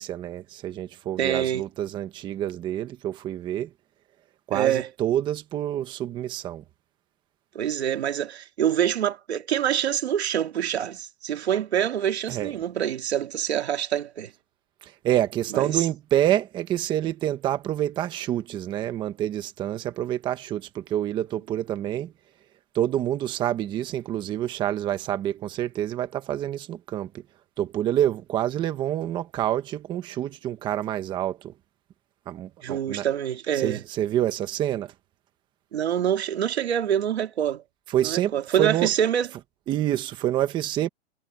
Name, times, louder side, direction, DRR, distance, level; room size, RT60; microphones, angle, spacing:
voice 1, 0.0-3.7 4.5-6.6 12.3-12.5 14.8-22.1 22.7-27.2 27.6-31.5 32.3-33.1 33.5-34.9 37.9-38.9 39.7-40.9, right 12 dB, 15° right, 1.2 m, -27 dB
voice 2, 1.2-1.6 4.5-4.9 7.5-14.3 15.5-15.9 32.6-33.8 35.7-37.6 38.0-39.3, right 9 dB, 75° right, 2.3 m, -26 dB
hypercardioid pair, 165°, 33 cm